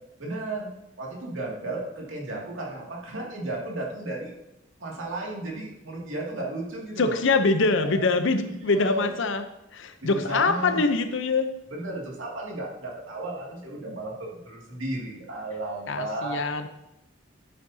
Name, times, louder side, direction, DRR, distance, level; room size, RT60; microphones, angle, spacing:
voice 1, 0.2-0.7 1.0-4.3 4.8-7.2 7.9-8.0 8.5-9.1 10.0-10.8 11.7-16.4, right 2 dB, 75° right, -3 dB, 2.4 m, -34 dB
voice 2, 7.0-9.4 9.7-11.5 15.9-16.7, left 3 dB, 70° left, 9 dB, 0.7 m, -24 dB
11.0 x 8.5 x 2.8 m, 0.90 s
head